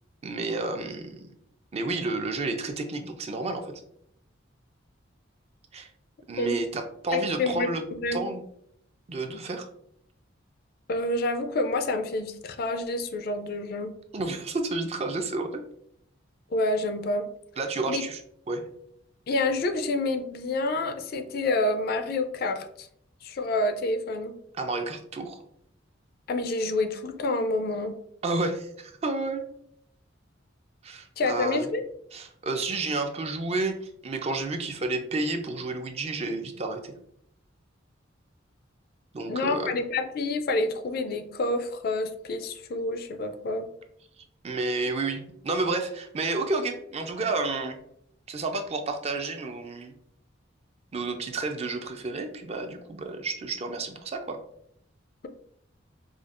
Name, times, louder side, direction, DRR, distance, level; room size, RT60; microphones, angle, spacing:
voice 1, 0.2-1.3 1.7-3.8 5.7-5.9 6.3-7.8 8.1-8.4 9.1-9.7 14.1-15.6 17.6-18.2 18.5-18.6 24.6-25.4 28.2-29.4 30.8-31.7 32.1-36.9 39.1-39.8 44.4-47.8 48.3-49.9 50.9-54.4, right 3 dB, 30° right, 5 dB, 0.4 m, -30 dB
voice 2, 7.1-8.3 10.9-13.9 16.5-17.3 17.9-18.0 19.3-22.9 23.2-24.4 26.3-28.0 31.2-31.8 39.3-43.7, left 2 dB, 50° left, 8 dB, 0.4 m, -28 dB
4.9 x 2.3 x 2.4 m, 0.71 s
head